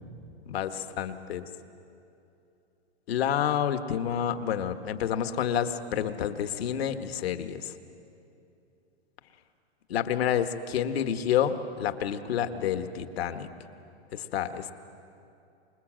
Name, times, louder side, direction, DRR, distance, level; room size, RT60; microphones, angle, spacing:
voice 1, 0.5-1.4 3.1-7.7 9.9-13.5 14.1-14.7, left 9 dB, 65° left, 8 dB, 1.6 m, -29 dB
26.0 x 21.0 x 7.6 m, 2.7 s
hypercardioid pair, 150°, 33 cm